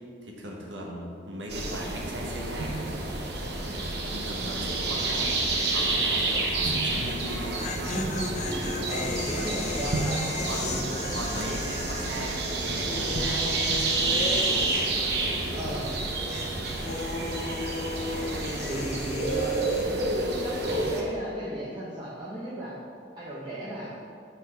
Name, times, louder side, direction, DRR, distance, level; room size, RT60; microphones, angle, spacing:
voice 1, 0.2-3.0 4.1-7.7 9.3-9.6 10.5-10.8 11.1-15.0, right 1 dB, 85° right, -1 dB, 1.3 m, -38 dB
sound 1, 1.5-21.0, right 2 dB, 65° right, 0.9 m, -29 dB
sound 2, 3.8-4.2 4.4-4.5 7.2-15.6 15.8-19.8, left 3 dB, 40° left, 0.5 m, -37 dB
voice 2, 8.0-11.3 15.5-15.9 18.6-22.7 23.2-23.9, right 1 dB, 25° right, -9 dB, 1.0 m, -35 dB
6.8 x 4.4 x 5.6 m, 2.4 s
head